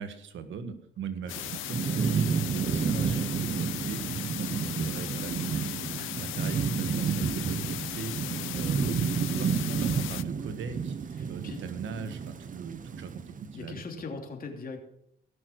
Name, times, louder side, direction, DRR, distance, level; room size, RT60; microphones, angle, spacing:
voice 1, 0.0-5.8 6.1-8.2 8.5-13.8, right 6 dB, 75° right, 9 dB, 1.6 m, -40 dB
sound 1, 1.3-10.2, left 17 dB, 85° left, 0.5 m, -37 dB
Thunderstorm / Rain, 1.3-13.5, right 6 dB, 40° right, 0.9 m, -31 dB
voice 2, 11.2-11.6 13.5-14.8, left 4 dB, 45° left, 3 dB, 2.9 m, -40 dB
16.5 x 6.6 x 6.3 m, 0.73 s
cardioid pair, 90°, 20 cm